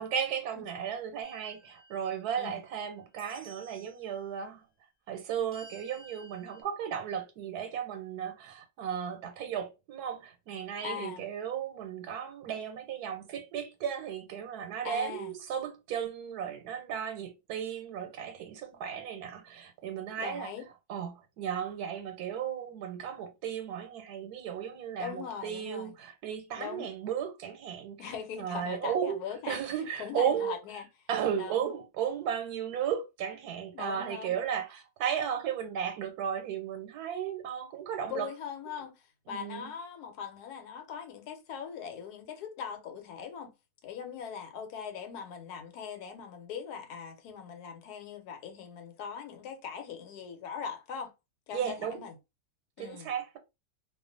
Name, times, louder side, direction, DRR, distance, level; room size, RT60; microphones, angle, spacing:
voice 1, 0.0-4.6 5.1-20.5 20.9-28.0 28.4-29.2 29.5-30.6 31.1-38.3 39.3-39.7 51.5-52.0 52.8-53.4, right 8 dB, 85° right, 1.2 m, -35 dB
sound 1, 1.2-2.7 3.2-4.0 5.5-6.6, right 2 dB, 10° left, 0.6 m, -54 dB
voice 2, 10.8-11.2 14.8-15.3 20.2-20.7 25.0-26.0 26.6-26.9 28.0-31.1 31.3-31.7 33.7-34.4 38.1-43.5 43.8-51.1 51.5-52.2 52.8-53.1, left 7 dB, 85° left, 1.2 m, -41 dB
2.5 x 2.3 x 2.5 m
omnidirectional pair, 1.6 m